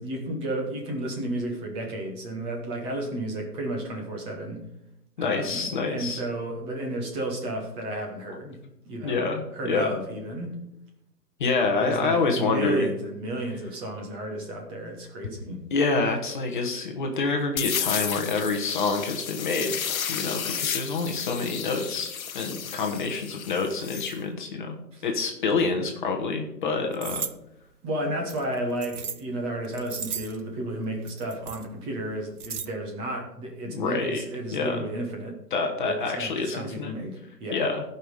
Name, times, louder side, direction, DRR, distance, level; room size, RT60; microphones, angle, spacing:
voice 1, 0.0-4.6 5.2-8.6 8.8-9.3 9.5-10.6 11.8-15.6 21.5-21.7 24.9-25.0 27.8-35.4 35.8-37.7, right 1 dB, 10° right, 0 dB, 1.3 m, -32 dB
voice 2, 5.2-6.2 9.0-9.9 11.4-12.9 15.7-19.8 20.1-24.8 25.0-27.2 33.6-34.3 34.5-34.8 35.5-36.9 37.5-37.8, left 4 dB, 30° left, 2 dB, 1.2 m, -27 dB
sound 1, 17.6-24.1, left 8 dB, 60° left, 0.9 m, -32 dB
sound 2, 26.9-27.3 28.3-29.2 29.6-30.4 31.1-31.7 32.1-32.7, right 7 dB, 65° right, 1.0 m, -35 dB
16.0 x 5.6 x 4.9 m, 0.83 s
hypercardioid pair, 155°, 48 cm